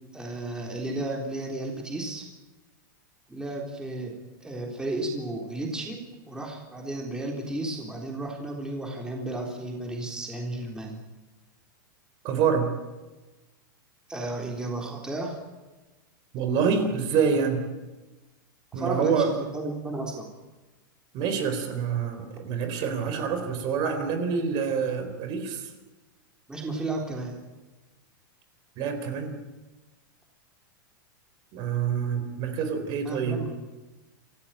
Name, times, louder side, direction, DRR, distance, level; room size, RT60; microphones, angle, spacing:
voice 1, 0.1-2.3 3.3-4.1 4.4-6.0 6.3-11.0 14.1-15.4 18.8-20.3 26.5-27.4 33.0-33.6, right 2 dB, 5° right, 0 dB, 3.8 m, -33 dB
voice 2, 12.2-12.7 16.3-17.6 18.7-19.3 21.1-25.7 28.8-29.4 31.5-33.4, right 6 dB, 40° right, 7 dB, 4.1 m, -26 dB
27.0 x 16.0 x 9.1 m, 1.2 s
supercardioid pair, 145°, 11 cm